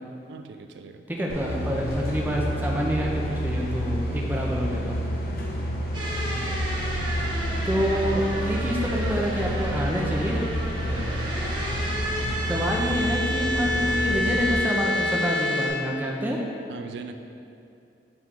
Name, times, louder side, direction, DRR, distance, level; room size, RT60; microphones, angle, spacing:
voice 1, 0.3-1.0 5.4-5.8 10.9-11.2 16.7-17.1, right 4 dB, 75° right, 7 dB, 0.3 m, -40 dB
voice 2, 1.1-5.0 7.6-10.4 12.5-16.4, equal, 10° right, -2 dB, 0.5 m, -27 dB
sound 1, 1.3-14.5, equal, 55° left, 0.7 m, -29 dB
sound 2, 5.9-15.7, left 1 dB, 25° right, 0.8 m, -30 dB
8.3 x 3.1 x 3.6 m, 2.6 s
head